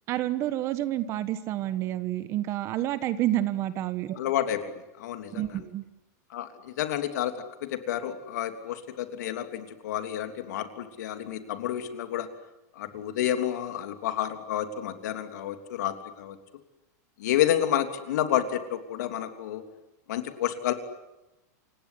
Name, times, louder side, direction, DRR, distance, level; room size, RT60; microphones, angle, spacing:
voice 1, 0.1-4.2 5.3-5.8, right 13 dB, 30° right, 13 dB, 1.3 m, -29 dB
voice 2, 4.1-4.7 5.0-5.6 6.3-7.3 7.6-12.3 12.7-16.4 17.2-19.6 20.1-20.7, left 11 dB, 70° left, 7 dB, 3.1 m, -30 dB
28.5 x 17.5 x 9.9 m, 0.98 s
supercardioid pair, 165°, 10 cm